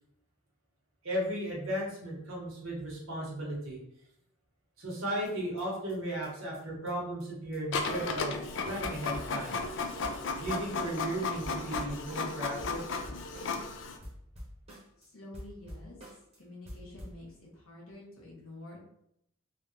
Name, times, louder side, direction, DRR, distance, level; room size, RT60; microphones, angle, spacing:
voice 1, 1.0-3.8 4.8-8.4 8.6-9.6 10.4-12.9, right 1 dB, 75° right, -4 dB, 1.2 m, -35 dB
sound 1, 4.9-5.0 5.3-5.4 5.6-5.7 5.9-6.0 6.2-6.3 6.5-6.6 6.9-7.0 7.2-7.3 7.5-7.6 7.8-8.2 8.5-8.6 8.8-11.2 11.4-13.7 14.0-15.1 15.3-16.4 16.7-17.2, equal, 30° right, 0.8 m, -47 dB
Printer, 7.7-14.0, left 4 dB, 60° left, 0.4 m, -34 dB
voice 2, 15.0-15.9 16.4-18.8, left 1 dB, 90° left, -4 dB, 1.1 m, -48 dB
3.4 x 2.3 x 2.7 m, 0.75 s
head